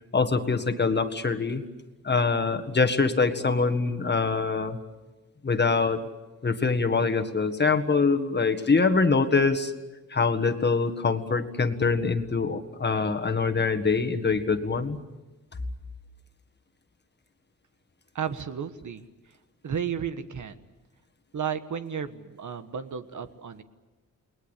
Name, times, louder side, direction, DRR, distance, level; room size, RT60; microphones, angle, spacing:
voice 1, 0.1-1.6 2.0-4.8 5.4-6.0 6.4-9.7 10.1-15.0, left 4 dB, 30° left, 7 dB, 1.7 m, -24 dB
voice 2, 18.1-19.0 19.6-20.6 21.3-23.6, right 7 dB, 65° right, 10 dB, 1.4 m, -33 dB
29.5 x 20.5 x 8.3 m, 1.2 s
wide cardioid pair, 135°, 33 cm